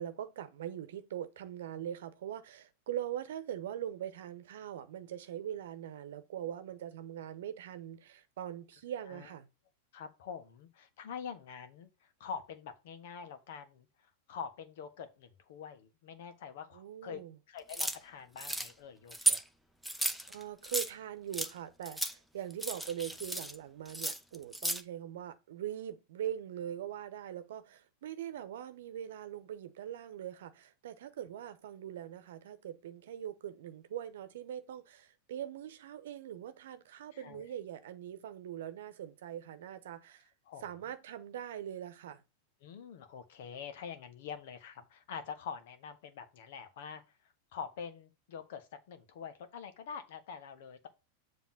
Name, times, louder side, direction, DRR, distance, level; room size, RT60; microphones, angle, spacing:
voice 1, 0.0-9.5 16.7-17.4 20.3-40.3 40.6-42.2, right 10 dB, 70° right, 0.9 m, -42 dB
voice 2, 9.9-13.9 14.3-17.2 17.5-19.4 37.1-37.4 40.5-40.6 42.6-47.0 47.5-50.9, left 6 dB, 65° left, 1.3 m, -45 dB
sound 1, 17.7-18.0 18.4-18.7 19.1-19.4 19.8-20.9 21.3-21.5 21.9-22.1 22.5-23.6 23.9-24.8, right 2 dB, ahead, 0.8 m, -34 dB
7.3 x 3.1 x 5.7 m
hypercardioid pair, 100°, 0 cm